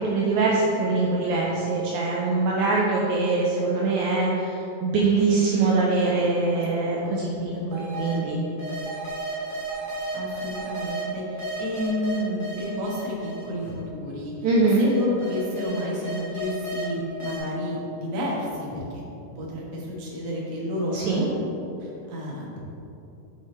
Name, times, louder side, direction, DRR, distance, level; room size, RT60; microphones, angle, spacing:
voice 1, 0.0-8.4 14.4-14.8 20.9-21.2, right 3 dB, 80° right, -4 dB, 1.9 m, -23 dB
voice 2, 6.5-7.7 10.1-14.4 14.8-19.0 19.4-21.3 21.8-22.6, left 1 dB, 60° right, -4 dB, 2.2 m, -31 dB
sound 1, 7.7-8.1 8.6-11.0 11.4-13.7 14.5-16.8 17.2-17.4, right 1 dB, 70° left, 0.4 m, -34 dB
6.5 x 5.0 x 4.2 m, 2.9 s
omnidirectional pair, 3.7 m